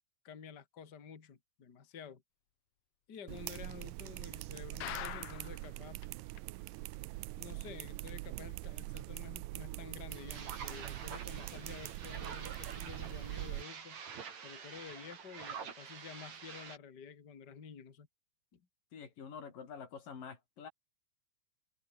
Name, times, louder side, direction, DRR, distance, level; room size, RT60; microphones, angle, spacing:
voice 1, 0.2-2.2 3.1-6.0 7.4-14.0 14.4-18.1 18.5-18.6, left 6 dB, 35° left, 2.6 m, -51 dB
sound 1, 3.3-13.6, right 20 dB, 80° right, 2.1 m, -43 dB
sound 2, 4.8-5.7 6.0-6.1 6.4-6.5 6.9-7.0, left 12 dB, 70° left, 1.5 m, -42 dB
sound 3, 10.1-16.8, right 6 dB, 60° right, 4.2 m, -47 dB
voice 2, 18.9-20.7, left 6 dB, 90° left, 5.4 m, -47 dB
omnidirectional pair, 3.8 m